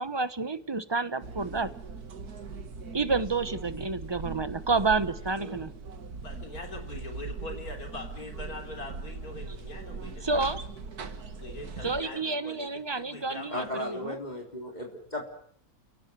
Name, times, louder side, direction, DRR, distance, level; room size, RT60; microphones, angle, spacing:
voice 1, 0.0-1.7 2.9-5.7 10.2-10.6 11.8-14.2, right 3 dB, 20° right, 13 dB, 1.0 m, -29 dB
sound 1, 1.2-12.0, right 4 dB, 80° right, 2.2 m, -40 dB
voice 2, 6.2-10.4 11.3-14.0, left 2 dB, 75° left, 3 dB, 3.9 m, -42 dB
voice 3, 13.5-15.2, left 1 dB, 30° left, 1 dB, 3.9 m, -35 dB
29.5 x 18.0 x 7.7 m, 0.63 s
omnidirectional pair, 1.6 m